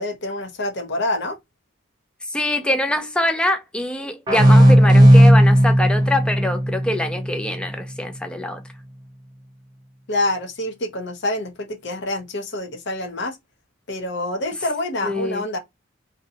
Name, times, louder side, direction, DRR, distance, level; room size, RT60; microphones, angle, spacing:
voice 1, 0.0-1.4 10.1-13.4 13.9-15.6, left 1 dB, 55° left, 0.7 m, -26 dB
voice 2, 2.3-8.6 15.0-15.4, left 1 dB, 5° left, 0.3 m, -24 dB
sound 1, 4.3-7.7, equal, 20° right, 0.7 m, -14 dB
2.7 x 2.2 x 2.7 m
head